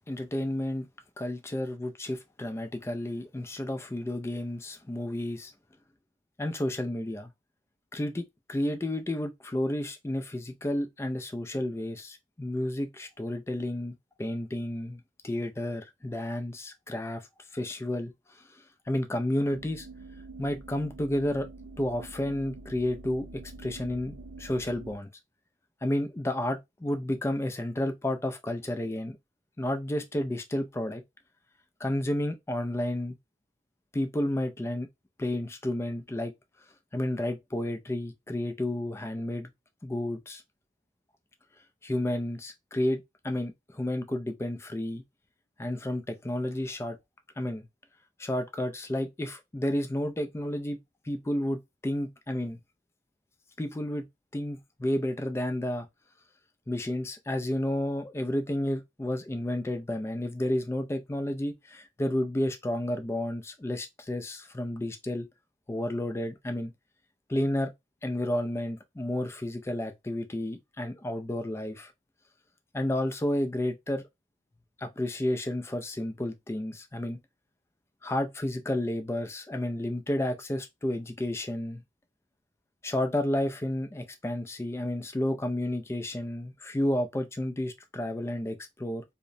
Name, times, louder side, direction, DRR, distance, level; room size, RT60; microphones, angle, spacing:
voice 1, 0.1-0.9 1.2-5.5 6.4-7.3 7.9-17.3 17.5-18.4 18.9-19.9 20.4-21.5 21.8-25.1 25.8-29.2 29.6-31.0 31.8-33.1 33.9-34.9 35.2-36.3 36.9-39.5 39.8-40.4 41.8-45.0 45.6-47.0 47.4-47.6 48.2-50.8 51.1-52.6 53.6-54.1 54.3-55.9 56.7-65.3 65.7-66.7 67.3-67.7 68.0-71.9 72.7-74.0 74.8-77.2 78.0-81.8 82.8-89.0, left 1 dB, 15° left, 0.3 m, -31 dB
sound 1, 19.5-25.0, right 2 dB, 80° right, 0.4 m, -46 dB
2.9 x 2.0 x 2.5 m
head